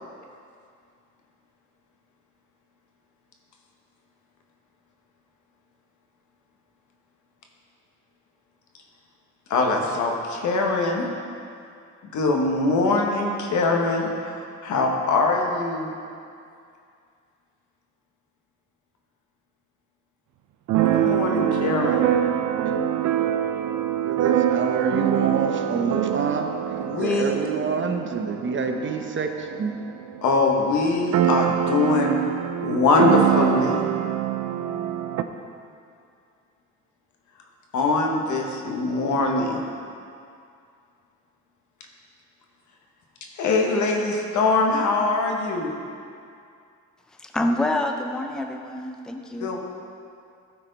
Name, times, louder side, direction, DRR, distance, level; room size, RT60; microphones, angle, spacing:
voice 1, 9.5-11.1 12.1-15.9 20.9-22.1 26.8-27.4 30.2-32.2 32.6-33.8 37.7-39.6 43.4-45.8 49.4-49.6, left 3 dB, 75° left, 1 dB, 1.2 m, -22 dB
Keyboard (musical), 20.7-30.2 30.5-30.6 30.8-35.2, right 11 dB, 75° right, 0.5 m, -24 dB
voice 2, 24.0-29.7, right 5 dB, 40° right, 4 dB, 0.8 m, -27 dB
voice 3, 47.2-49.5, left 1 dB, ahead, 4 dB, 0.5 m, -27 dB
12.5 x 4.6 x 4.0 m, 2.4 s
cardioid pair, 90°, 30 cm